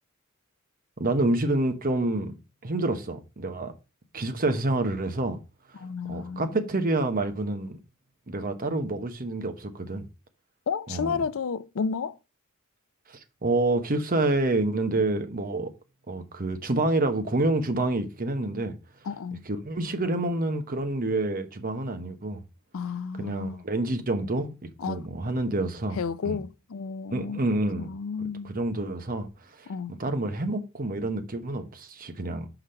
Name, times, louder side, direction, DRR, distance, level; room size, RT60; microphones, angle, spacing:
voice 1, 1.0-2.4 2.6-3.7 4.1-5.4 6.1-7.8 8.3-10.1 10.9-11.2 13.1-15.7 16.1-18.7 19.5-22.4 23.2-26.0 26.2-26.4 27.1-27.9 28.4-29.3 30.0-32.5, right 2 dB, 40° right, 1.0 m, -28 dB
voice 2, 5.7-6.6 10.7-12.2 19.0-19.4 22.7-23.6 24.8-25.0 25.9-27.4 27.8-28.5 29.7-29.9, left 5 dB, 65° left, 0.4 m, -32 dB
5.9 x 5.1 x 5.6 m
head